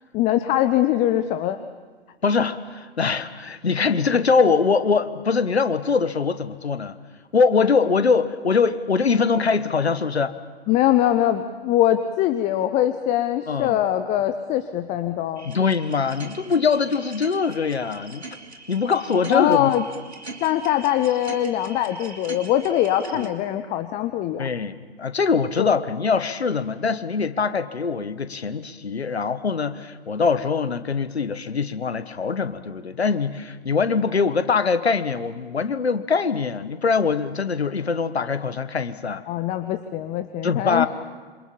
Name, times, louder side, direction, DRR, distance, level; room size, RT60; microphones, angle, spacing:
voice 1, 0.1-1.6 10.7-15.5 19.3-19.8 20.4-24.5 25.6-25.8 39.3-40.9, left 12 dB, 20° left, 11 dB, 0.8 m, -22 dB
voice 2, 2.2-6.9 7.3-10.3 13.5-13.8 15.4-18.2 18.7-19.7 24.4-39.2 40.4-40.9, left 5 dB, 70° left, 12 dB, 1.5 m, -23 dB
sound 1, 15.4-23.3, right 3 dB, 75° right, 2.9 m, -41 dB
27.0 x 26.5 x 7.3 m, 1.5 s
figure-of-eight pair, 110°, 32 cm